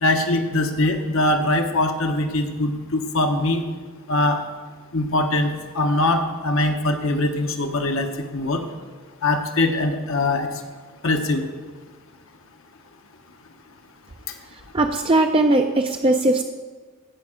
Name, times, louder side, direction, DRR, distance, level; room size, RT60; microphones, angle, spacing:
voice 1, 0.0-3.6 4.1-4.4 4.9-8.6 9.2-10.5 11.0-11.4, left 2 dB, 65° left, 5 dB, 0.9 m, -22 dB
voice 2, 14.7-16.4, right 2 dB, 25° right, 4 dB, 0.4 m, -19 dB
15.5 x 5.3 x 5.0 m, 1.4 s
head